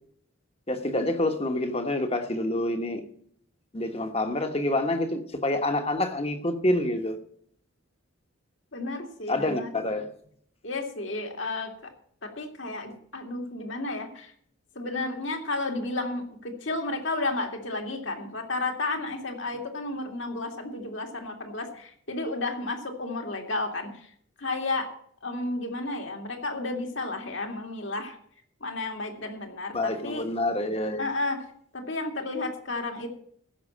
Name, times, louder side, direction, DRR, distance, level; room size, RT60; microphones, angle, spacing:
voice 1, 0.7-3.0 3.7-7.2 9.3-10.1 29.7-31.0, left 1 dB, 30° left, 7 dB, 1.2 m, -27 dB
voice 2, 8.7-9.7 10.6-11.9 12.2-14.3 14.8-24.1 24.4-24.9 25.2-28.2 28.6-30.3 31.0-31.4 31.7-33.1, left 2 dB, 65° left, 3 dB, 2.3 m, -32 dB
15.0 x 6.2 x 7.3 m, 0.63 s
head